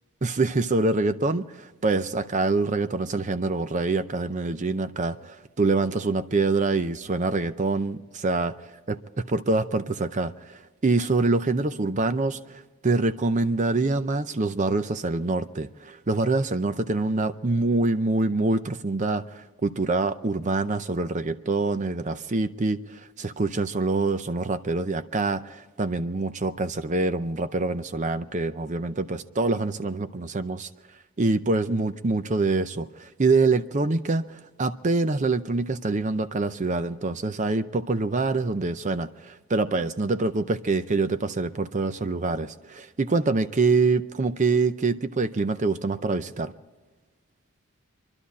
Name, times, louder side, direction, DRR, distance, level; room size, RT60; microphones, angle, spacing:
voice 1, 0.2-8.5 8.9-9.0 9.3-30.7 31.2-46.5, right 3 dB, 35° right, 0.5 m, -25 dB
27.0 x 11.5 x 4.2 m
head